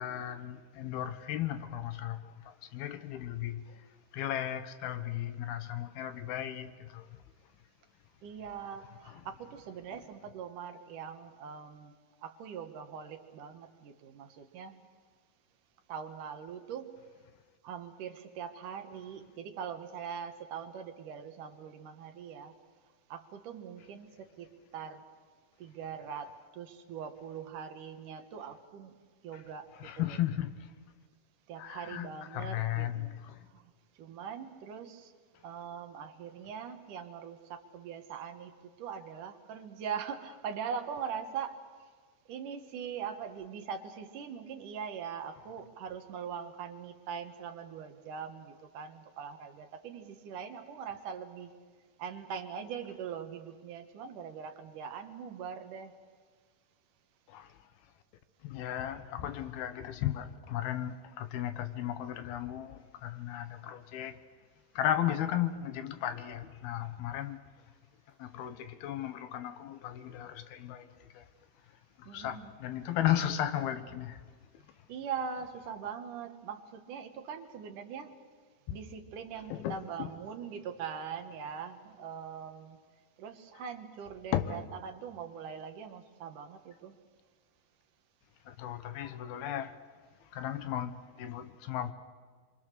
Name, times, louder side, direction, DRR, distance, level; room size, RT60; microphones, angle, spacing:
voice 1, 0.0-3.8 4.1-7.1 9.1-9.2 29.3-29.4 29.7-30.7 31.6-33.5 57.3-57.6 58.4-64.2 64.8-67.4 68.2-71.3 72.0-74.2 74.5-74.6 78.7-78.8 79.5-80.1 84.3-84.6 88.5-89.8 90.3-91.9, left 11 dB, 75° left, 3.0 m, -35 dB
voice 2, 8.2-12.0 12.2-14.8 15.9-17.0 17.6-22.5 23.1-25.0 25.6-28.9 29.2-30.2 31.5-33.6 34.0-35.1 35.4-38.5 38.8-41.6 42.3-51.5 52.0-55.9 72.1-72.5 74.9-78.2 78.7-82.8 83.2-87.0, right 7 dB, 65° right, 2.6 m, -42 dB
26.0 x 25.0 x 6.7 m
omnidirectional pair, 4.5 m